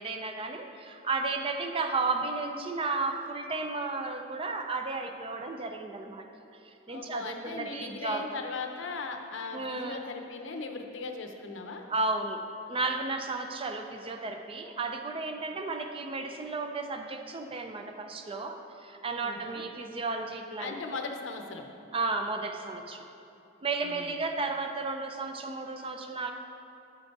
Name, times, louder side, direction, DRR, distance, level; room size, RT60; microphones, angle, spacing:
voice 1, 0.0-6.2 6.6-8.4 9.5-10.0 11.9-20.7 21.9-23.0 23.6-26.3, right 3 dB, 30° right, 5 dB, 0.4 m, -33 dB
voice 2, 6.9-11.8 19.2-19.6 20.6-21.7 23.8-24.2, left 4 dB, 65° left, 4 dB, 0.7 m, -38 dB
8.3 x 5.2 x 4.6 m, 2.8 s
head